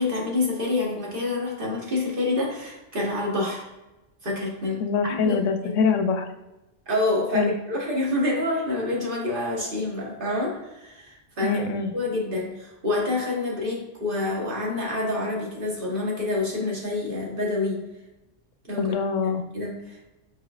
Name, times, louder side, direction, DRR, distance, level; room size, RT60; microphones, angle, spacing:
voice 1, 0.0-3.6 4.2-5.4 5.6-5.7 6.9-11.6 11.9-17.8 18.7-18.9 19.2-20.1, left 2 dB, 45° right, -3 dB, 1.3 m, -27 dB
voice 2, 4.8-6.3 7.3-7.5 11.4-11.9 18.8-19.4, left 5 dB, 80° left, 6 dB, 0.9 m, -24 dB
4.9 x 4.5 x 2.3 m, 1.0 s
omnidirectional pair, 1.3 m